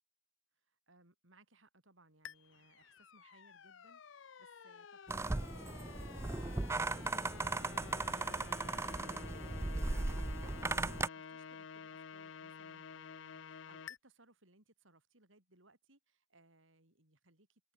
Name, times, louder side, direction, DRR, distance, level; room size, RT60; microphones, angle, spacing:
voice 1, 0.6-17.7, right 2 dB, 80° right, 6.2 m, -67 dB
sound 1, 2.2-14.0, left 6 dB, 70° left, 0.6 m, -51 dB
sound 2, 5.1-11.1, right 3 dB, 15° right, 0.3 m, -37 dB
head